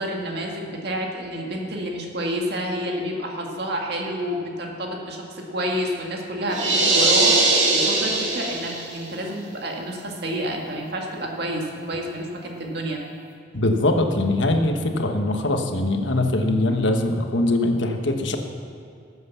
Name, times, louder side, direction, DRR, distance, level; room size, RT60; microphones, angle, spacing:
voice 1, 0.0-13.0, equal, 60° right, 0 dB, 2.0 m, -29 dB
sound 1, 6.5-9.0, right 3 dB, 85° right, 2.1 m, -20 dB
voice 2, 13.5-18.4, left 1 dB, 75° left, 4 dB, 1.2 m, -22 dB
13.5 x 8.0 x 7.0 m, 2.5 s
head